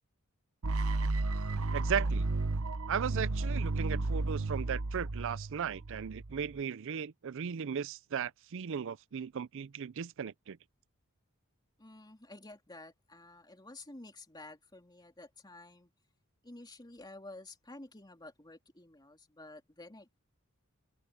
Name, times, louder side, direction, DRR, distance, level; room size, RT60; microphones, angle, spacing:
sound 1, 0.6-6.6, right 2 dB, 80° right, 1.0 m, -33 dB
voice 1, 1.7-2.3 2.9-10.6, right 7 dB, 65° right, 0.5 m, -36 dB
voice 2, 11.8-15.9 16.4-20.2, left 2 dB, 20° left, 2.9 m, -51 dB
head